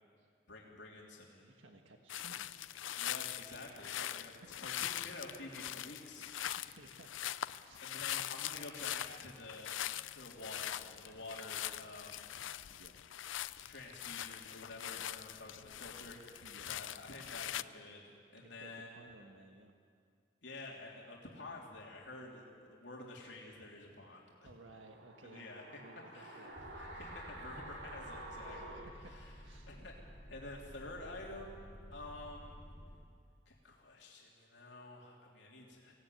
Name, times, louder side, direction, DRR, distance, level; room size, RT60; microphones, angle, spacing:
voice 1, 0.5-1.4 3.0-6.8 7.8-9.7 10.1-12.3 13.6-18.9 20.4-22.4 22.7-24.5 25.2-25.8 26.1-26.5 26.8-28.9 29.1-29.2 29.7-29.9 30.3-31.6 31.9-32.6 33.5-35.9, left 2 dB, 65° left, -2 dB, 3.2 m, -50 dB
voice 2, 1.3-2.5 3.8-4.7 6.3-7.2 7.6-7.8 12.7-13.2 14.8-15.1 16.4-16.7 18.4-19.7 24.4-26.5 28.5-29.8, right 2 dB, 85° right, 4 dB, 1.5 m, -59 dB
sound 1, 2.1-17.6, left 12 dB, 80° left, 0.5 m, -42 dB
sound 2, 24.7-29.8 30.1-30.2, right 1 dB, 60° right, 2.8 m, -50 dB
sound 3, 26.6-32.9, equal, 15° right, 7.7 m, -53 dB
24.0 x 17.0 x 9.4 m, 2.2 s
head